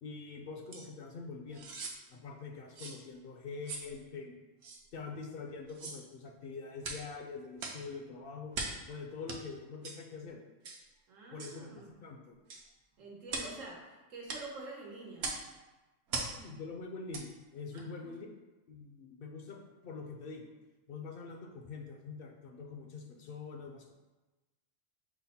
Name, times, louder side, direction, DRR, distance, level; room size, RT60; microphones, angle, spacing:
voice 1, 0.0-1.8 2.1-4.3 4.9-8.5 8.9-10.4 11.3-12.4 16.4-18.3 18.7-20.5 20.9-23.9, left 4 dB, 60° left, 2 dB, 0.6 m, -45 dB
sound 1, 0.7-0.9 1.5-2.0 2.8-3.0 3.7-3.9 4.6-4.8 5.7-6.0 6.8-7.1 7.6-7.8 8.5-8.8 9.3-9.4 9.8-10.0 10.6-10.8 11.4-11.6 12.5-12.7 13.3-13.6 14.3-14.5 15.2-15.5 16.1-16.4 17.1-17.3 17.8-17.9, right 3 dB, 65° right, 0.9 m, -40 dB
voice 2, 11.1-11.9 13.0-15.3 17.7-18.2, right 2 dB, 90° right, -1 dB, 1.3 m, -47 dB
6.0 x 2.1 x 4.1 m, 1.1 s
omnidirectional pair, 1.3 m